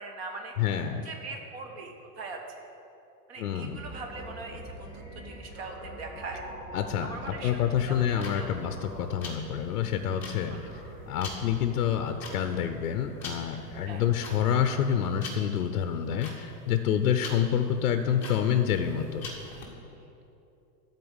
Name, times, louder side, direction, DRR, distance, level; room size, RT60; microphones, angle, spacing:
voice 1, 0.0-0.5 1.0-2.7 3.3-6.4 7.0-8.6 10.5-10.7 13.9-14.0 17.1-17.2, right 3 dB, 40° right, 3 dB, 1.1 m, -41 dB
voice 2, 0.6-1.1 3.4-3.8 6.7-10.6 11.1-19.3, left 9 dB, 60° left, 7 dB, 0.6 m, -28 dB
sound 1, 3.6-14.8, equal, 15° right, 1.7 m, -45 dB
sound 2, 7.9-19.7, left 3 dB, 5° left, 0.7 m, -44 dB
12.5 x 4.4 x 8.0 m, 2.9 s
supercardioid pair, 180°, 49 cm